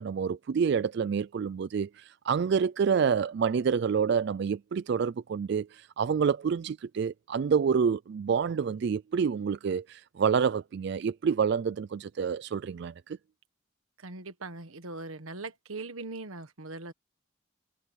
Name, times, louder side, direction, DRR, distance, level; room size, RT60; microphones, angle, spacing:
voice 1, 0.0-13.2, right 6 dB, 55° right, 0.3 m, -28 dB
voice 2, 14.0-16.9, right 3 dB, 90° right, 1.5 m, -40 dB
head